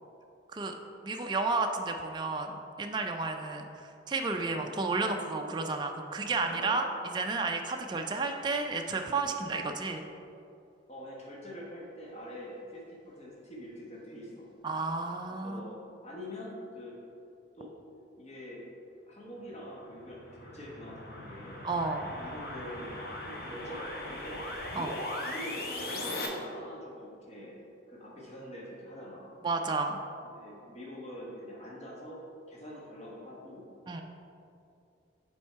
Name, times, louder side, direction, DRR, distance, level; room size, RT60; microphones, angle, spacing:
voice 1, 1.0-6.9 7.1-10.1 14.6-15.7 21.6-22.1 24.8-24.9 29.4-30.0 33.9-34.0, right 3 dB, 25° right, 4 dB, 0.3 m, -32 dB
voice 2, 4.4-4.7 6.4-7.0 10.9-14.5 15.3-17.0 17.5-17.7 18.2-18.7 19.1-21.6 22.2-24.4 25.2-27.6 27.9-29.3 30.2-33.7, equal, 35° left, -5 dB, 1.1 m, -45 dB
sound 1, 19.8-26.3, left 1 dB, 55° left, 0.8 m, -39 dB
7.4 x 3.5 x 4.5 m, 2.6 s
head